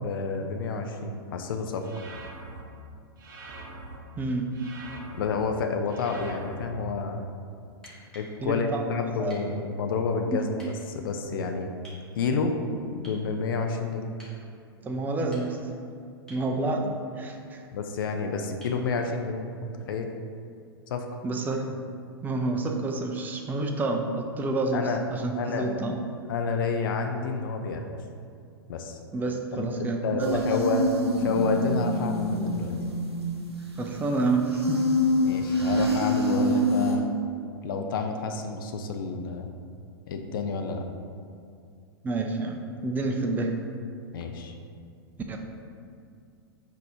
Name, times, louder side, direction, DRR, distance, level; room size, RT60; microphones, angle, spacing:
voice 1, 0.0-1.8 5.1-7.2 8.1-10.5 10.9-11.7 12.2-12.5 13.0-14.1 17.7-20.1 20.9-21.1 24.7-25.0 25.4-25.7 26.3-28.0 28.7-29.0 29.5-30.8 31.2-32.7 35.2-37.1 37.6-39.5 40.1-40.8 44.1-44.5, left 4 dB, 55° left, 4 dB, 0.4 m, -29 dB
sound 1, 1.8-2.6 3.2-4.0 4.5-5.3 5.9-6.7, right 2 dB, 45° right, 0.7 m, -43 dB
voice 2, 4.2-4.5 8.4-9.4 10.3-10.4 14.8-15.6 16.3-17.7 21.2-21.8 22.2-26.0 29.1-30.4 33.8-34.9 42.0-43.5 45.3-45.4, right 3 dB, 15° right, 3 dB, 0.4 m, -29 dB
sound 2, 7.7-8.4 9.3-9.5 10.6-10.7 11.8-12.0 13.0-13.3 14.2-14.4 15.1-15.7 16.3-16.5 18.6-18.8 20.7-20.8, equal, 5° left, 1.3 m, -50 dB
sound 3, 30.2-34.2 34.5-37.0, left 1 dB, 90° right, 0.7 m, -26 dB
4.0 x 2.7 x 4.8 m, 2.4 s
figure-of-eight pair, 100°, 13 cm